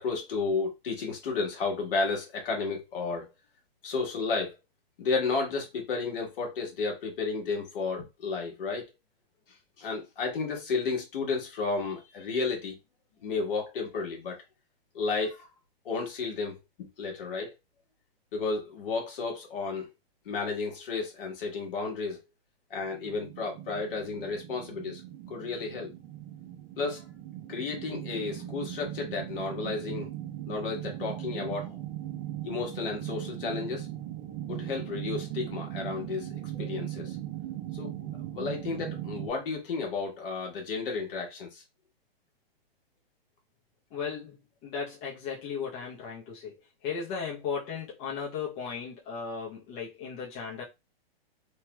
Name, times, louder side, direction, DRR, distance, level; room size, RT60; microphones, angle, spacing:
voice 1, 0.0-3.3 3.8-4.5 5.0-8.9 9.8-12.8 13.2-14.4 14.9-15.5 15.8-17.5 18.3-19.9 20.2-22.2 22.7-25.0 25.3-25.9 26.8-27.0 27.5-30.1 30.5-31.8 32.4-33.9 34.5-37.2 37.7-37.9 38.3-41.6, left 4 dB, 60° left, 1.5 m, -32 dB
sound 1, 22.8-39.3, right 13 dB, 30° right, 0.5 m, -39 dB
voice 2, 43.9-44.4 44.6-46.5 46.8-50.6, left 6 dB, 30° left, 0.8 m, -36 dB
3.0 x 3.0 x 2.2 m
hypercardioid pair, 145°, 30 cm